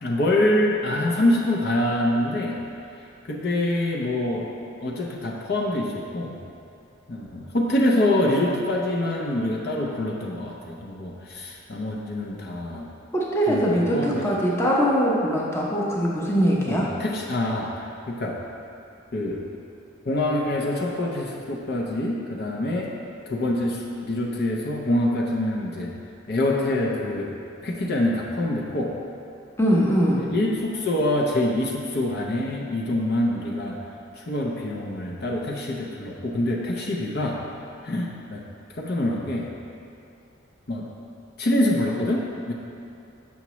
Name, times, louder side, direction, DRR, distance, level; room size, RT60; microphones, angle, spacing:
voice 1, 0.0-2.6 3.2-4.5 4.8-6.4 7.1-12.9 13.5-14.3 16.7-18.4 19.1-19.5 20.1-22.9 23.3-25.9 26.3-27.3 27.6-28.9 30.2-33.8 34.2-37.4 37.8-38.4 38.7-39.5 40.7-40.9 41.4-42.5, left 1 dB, 55° left, -2 dB, 0.6 m, -25 dB
voice 2, 13.1-16.9 29.6-30.3, equal, 15° left, -5 dB, 0.7 m, -22 dB
7.1 x 5.7 x 3.1 m, 2.5 s
head